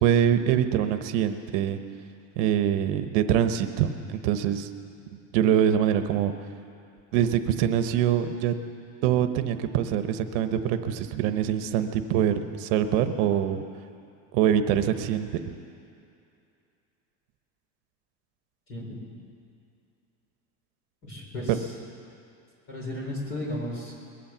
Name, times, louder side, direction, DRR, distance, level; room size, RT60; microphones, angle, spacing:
voice 1, 0.0-1.8 2.4-4.7 5.3-6.3 7.1-8.5 9.0-13.6 14.3-15.6 21.5-21.6, right 9 dB, 70° right, 9 dB, 0.9 m, -24 dB
voice 2, 18.7-19.0 21.0-21.5 22.7-23.9, left 1 dB, 35° left, -2 dB, 4.3 m, -34 dB
21.0 x 8.6 x 7.2 m, 2.6 s
cardioid pair, 160°, 37 cm